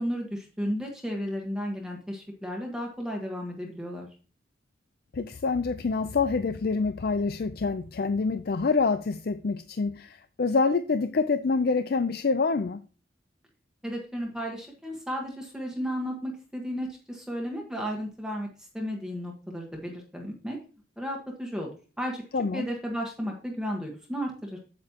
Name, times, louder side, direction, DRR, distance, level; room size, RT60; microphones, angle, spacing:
voice 1, 0.0-4.1 13.8-20.6 21.0-21.7 22.0-22.2 22.5-24.6, equal, 5° right, 1.3 m, -33 dB
voice 2, 5.1-12.8 22.3-22.7, left 4 dB, 55° left, 0.4 m, -26 dB
8.7 x 8.3 x 2.9 m
head